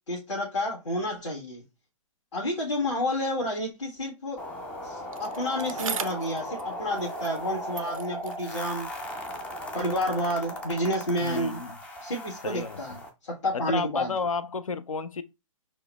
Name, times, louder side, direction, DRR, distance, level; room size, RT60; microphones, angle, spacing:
voice 1, 0.1-1.6 2.3-4.4 4.8-8.9 9.7-11.6 12.0-14.1, left 1 dB, 55° left, 1.4 m, -30 dB
sound 1, 4.4-13.1, equal, 5° left, 0.3 m, -37 dB
Bicycle, 5.1-7.5 7.7-10.1 10.9-11.0, right 6 dB, 75° right, 0.4 m, -40 dB
voice 2, 11.2-11.8 12.4-12.8 13.5-15.2, left 4 dB, 75° left, 0.4 m, -31 dB
6.1 x 2.0 x 2.2 m
figure-of-eight pair, 120°, 18 cm